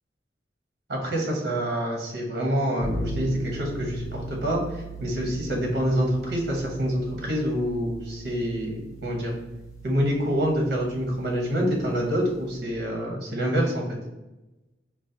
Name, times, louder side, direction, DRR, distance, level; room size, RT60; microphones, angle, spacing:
voice 1, 0.9-9.3 9.8-13.8, equal, 65° right, -1 dB, 0.8 m, -26 dB
sound 1, 2.8-12.6, right 1 dB, 20° left, 0.6 m, -39 dB
3.8 x 2.1 x 2.7 m, 1.0 s
head